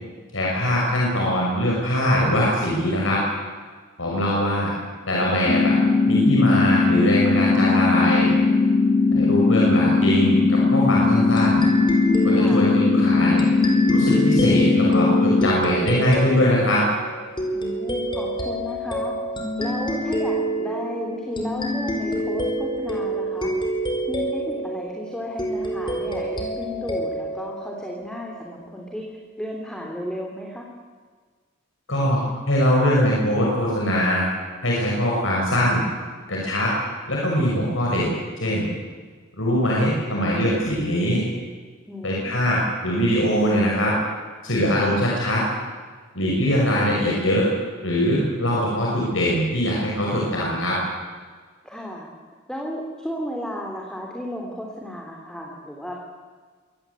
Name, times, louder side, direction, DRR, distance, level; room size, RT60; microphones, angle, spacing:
voice 1, 0.3-3.2 4.0-4.7 5.1-5.7 6.0-8.3 9.1-11.6 12.2-13.4 13.9-16.8 31.9-32.2 32.5-34.3 34.6-35.8 36.3-36.7 37.1-38.7 39.4-41.2 42.0-43.9 44.4-45.4 46.1-47.5 47.8-50.8, equal, 85° left, -3 dB, 6.1 m, -22 dB
sound 1, 5.5-15.5, left 4 dB, 55° left, 2.6 m, -19 dB
sound 2, 11.4-28.5, right 1 dB, 25° left, 4.8 m, -28 dB
voice 2, 12.3-12.7 17.5-19.1 19.6-23.5 24.1-30.7 41.9-42.4 51.6-52.1 52.5-56.1, equal, 5° left, 0 dB, 3.2 m, -33 dB
24.0 x 19.0 x 8.4 m, 1.5 s
head